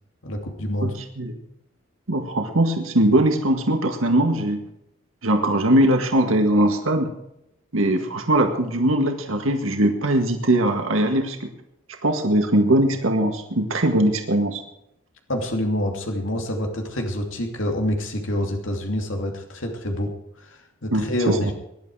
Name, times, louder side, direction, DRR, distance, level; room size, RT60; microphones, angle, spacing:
voice 1, 0.2-0.9 15.3-20.1 20.4-21.5, left 1 dB, 70° left, 2 dB, 2.8 m, -27 dB
voice 2, 2.1-4.6 5.2-7.1 7.7-11.5 12.0-14.6 20.9-21.5, right 1 dB, 85° right, 4 dB, 1.8 m, -20 dB
20.5 x 11.5 x 4.9 m, 0.82 s
head